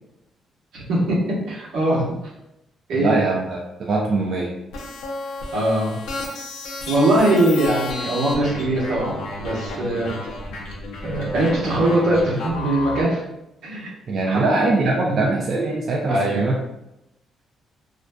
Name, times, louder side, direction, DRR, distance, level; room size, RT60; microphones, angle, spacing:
voice 1, 0.7-1.2 1.5-2.1 2.9-3.1 5.5-6.0 6.9-10.1 11.0-13.2 13.6-13.9 14.2-14.7 15.0-15.4 16.1-16.6, right 1 dB, 85° right, -5 dB, 0.9 m, -21 dB
voice 2, 3.0-4.6 14.1-16.6, right 3 dB, 55° right, -2 dB, 0.4 m, -22 dB
sound 1, 4.7-13.0, left 2 dB, 90° left, 0.5 m, -32 dB
2.5 x 2.4 x 2.2 m, 0.89 s
cardioid pair, 90°, 0 cm